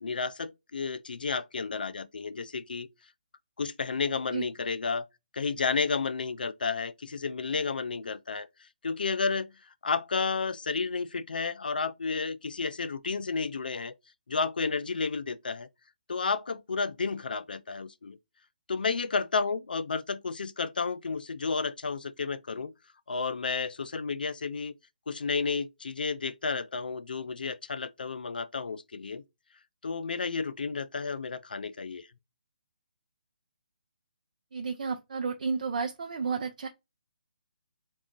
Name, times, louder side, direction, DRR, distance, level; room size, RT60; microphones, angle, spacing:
voice 1, 0.0-2.9 3.6-5.1 5.3-13.9 14.3-15.7 16.1-18.2 18.7-22.7 23.1-24.7 25.1-29.2 29.8-32.1, left 4 dB, 70° left, 0.4 m, -32 dB
voice 2, 34.5-36.7, right 5 dB, 55° right, 0.4 m, -32 dB
3.5 x 2.3 x 3.6 m
figure-of-eight pair, 145°, 5 cm